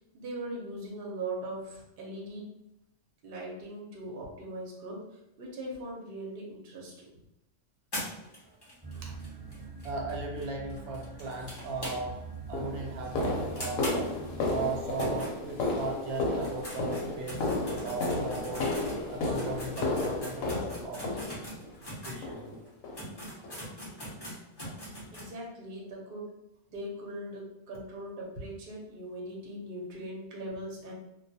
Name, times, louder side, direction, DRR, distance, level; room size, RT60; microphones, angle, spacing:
voice 1, 0.0-2.4 3.2-5.0 5.4-7.2 25.1-26.3 26.7-30.9, right 1 dB, 50° right, -3 dB, 0.7 m, -40 dB
sound 1, 7.9-12.3 12.6-12.7 13.0-13.1 13.6-15.9 16.3-22.2 22.7-22.8 22.9-25.3, equal, 30° left, 0.4 m, -41 dB
sound 2, 8.8-14.8, right 3 dB, 10° right, 1.0 m, -43 dB
voice 2, 9.8-12.2 12.5-14.1 14.5-17.4 17.7-18.6 19.1-20.5 20.8-21.0 22.0-22.6, right 3 dB, 85° right, 0 dB, 1.1 m, -37 dB
sound 3, 11.8-12.0 12.5-21.7 22.2-22.6 22.8-23.1 23.4-23.6 24.1-24.2 24.7-24.8, left 2 dB, 75° left, 1.0 m, -33 dB
2.3 x 2.3 x 2.6 m, 0.86 s
omnidirectional pair, 1.5 m